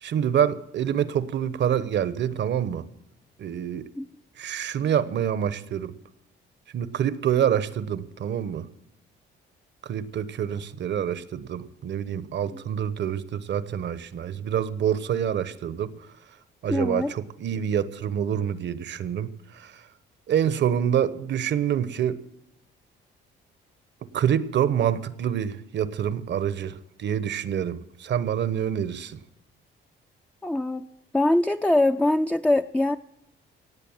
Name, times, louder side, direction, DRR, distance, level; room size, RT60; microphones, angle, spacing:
voice 1, 0.0-2.9 3.4-3.9 4.4-5.9 6.7-8.7 9.8-15.9 16.6-19.8 20.3-22.2 24.1-29.2, right 9 dB, 65° right, 16 dB, 1.0 m, -26 dB
voice 2, 16.7-17.1 30.4-30.9 31.1-33.0, left 1 dB, 5° left, 5 dB, 0.5 m, -23 dB
18.0 x 8.3 x 7.3 m, 0.79 s
cardioid pair, 90°, 20 cm